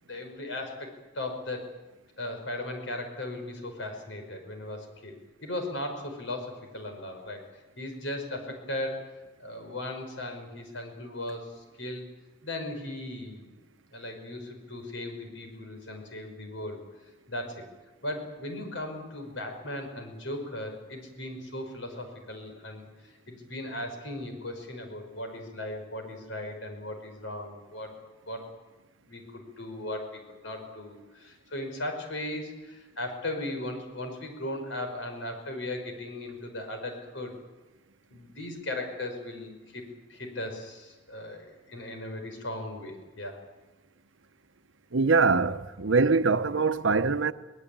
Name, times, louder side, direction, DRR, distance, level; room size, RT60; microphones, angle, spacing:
voice 1, 0.0-1.7 2.2-5.1 5.4-7.4 7.8-12.1 12.4-13.6 13.9-16.8 17.3-17.6 18.0-27.9 28.2-28.5 29.0-37.3 38.1-39.8 40.1-43.4, left 1 dB, 75° left, 5.7 m, -37 dB
voice 2, 44.9-47.3, right 4 dB, 85° right, 0.9 m, -23 dB
23.0 x 19.5 x 8.7 m
head